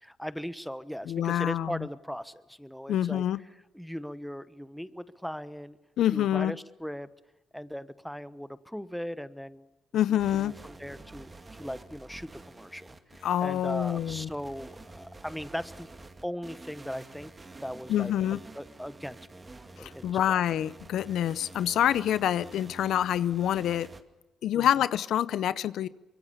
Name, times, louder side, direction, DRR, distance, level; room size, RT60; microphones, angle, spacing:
voice 1, 0.0-3.2 3.7-5.8 6.1-7.1 7.5-9.7 10.3-15.9 16.2-17.3 17.6-19.4 19.7-20.2 24.5-24.7, equal, ahead, 15 dB, 1.1 m, -39 dB
voice 2, 1.1-1.9 2.9-3.4 6.0-6.5 9.9-10.5 13.2-14.3 17.9-18.4 19.8-23.9 24.4-25.9, left 11 dB, 75° left, 17 dB, 0.7 m, -27 dB
sound 1, 10.2-24.0, right 2 dB, 25° right, 2.2 m, -49 dB
24.5 x 23.0 x 7.0 m, 1.0 s
cardioid pair, 90°, 0 cm